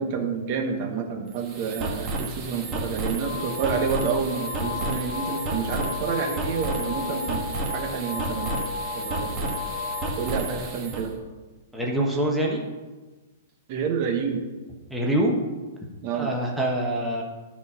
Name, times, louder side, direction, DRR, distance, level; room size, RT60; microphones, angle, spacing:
voice 1, 0.0-8.5 8.9-9.5 10.2-11.1 13.7-14.4 16.0-16.3, right 6 dB, 40° right, 4 dB, 1.1 m, -29 dB
sound 1, 1.3-11.1, right 2 dB, 20° right, 1.5 m, -32 dB
sound 2, 3.2-10.8, left 5 dB, 25° left, 1.2 m, -34 dB
voice 2, 11.7-12.6 14.9-15.3 16.1-17.2, right 1 dB, ahead, -3 dB, 1.1 m, -25 dB
12.0 x 4.2 x 5.6 m, 1.3 s
hypercardioid pair, 160°, 0 cm